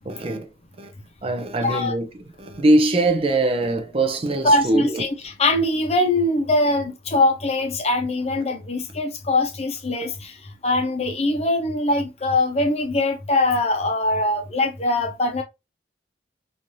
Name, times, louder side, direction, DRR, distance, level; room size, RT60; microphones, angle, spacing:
voice 1, 0.0-0.5 0.8-0.9 1.2-2.1 2.4-5.0, right 2 dB, 35° right, 0.5 m, -22 dB
voice 2, 1.6-1.9 4.4-10.3 10.6-15.4, left 2 dB, 35° left, 0.7 m, -22 dB
3.1 x 2.6 x 2.5 m
head